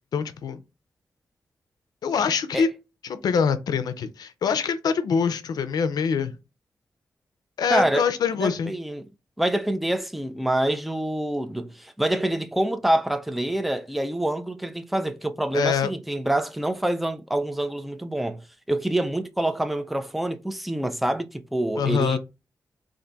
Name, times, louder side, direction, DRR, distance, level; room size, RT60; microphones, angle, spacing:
voice 1, 0.1-0.6 2.0-2.7 3.0-6.4 7.6-8.7 15.5-15.9 21.8-22.2, left 6 dB, 85° left, 0.4 m, -24 dB
voice 2, 7.7-8.1 8.4-9.1 9.4-18.4 18.7-22.2, right 1 dB, ahead, 0.3 m, -26 dB
3.8 x 2.5 x 3.3 m
wide cardioid pair, 140°, 7 cm